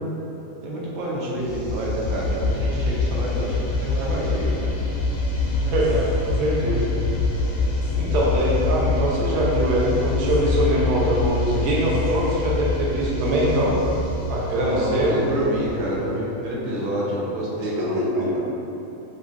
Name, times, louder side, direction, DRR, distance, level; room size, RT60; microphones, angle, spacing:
voice 1, 0.6-4.7 14.6-18.1, right 1 dB, 85° right, -5 dB, 1.0 m, -28 dB
sound 1, 1.4-16.2, left 3 dB, 85° left, 1.1 m, -25 dB
voice 2, 5.6-6.9 8.0-13.8 14.3-15.2 17.8-18.4, right 1 dB, 65° right, -5 dB, 0.7 m, -22 dB
2.9 x 2.6 x 2.4 m, 3.0 s
omnidirectional pair, 1.5 m